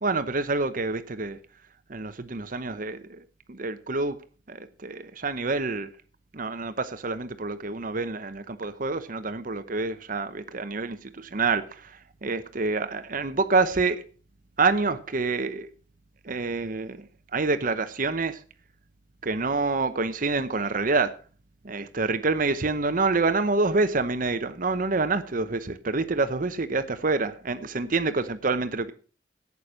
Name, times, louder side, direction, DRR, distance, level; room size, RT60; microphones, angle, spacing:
voice 1, 0.0-1.4 1.9-4.2 4.5-5.9 6.3-14.0 14.6-15.7 16.2-17.0 17.3-18.4 19.2-21.2 21.6-28.9, right 3 dB, 45° right, 0.8 m, -27 dB
11.5 x 8.4 x 6.3 m
head